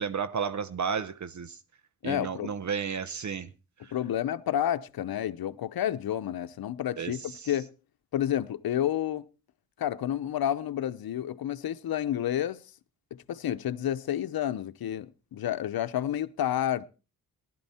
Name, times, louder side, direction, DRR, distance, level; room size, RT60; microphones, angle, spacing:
voice 1, 0.0-1.6 2.0-3.5 3.8-3.9 7.0-7.5, right 6 dB, 55° right, 0.8 m, -33 dB
voice 2, 2.0-2.6 3.9-7.7 8.1-9.2 9.8-12.6 13.1-16.9, left 11 dB, 85° left, 0.8 m, -30 dB
18.5 x 11.5 x 4.3 m
wide cardioid pair, 135°, 35 cm